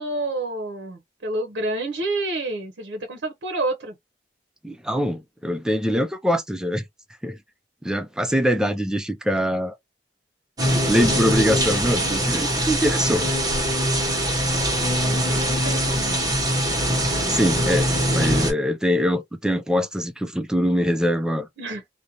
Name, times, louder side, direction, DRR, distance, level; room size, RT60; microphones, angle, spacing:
voice 1, 0.0-3.9 14.7-16.1 21.6-21.8, right 2 dB, 80° right, 0.6 m, -29 dB
voice 2, 4.6-6.8 7.2-7.4 7.8-9.8 10.9-13.3 17.3-21.5, equal, 5° right, 0.3 m, -23 dB
sound 1, 10.6-18.5, equal, 20° right, 1.1 m, -22 dB
2.5 x 2.1 x 2.8 m
head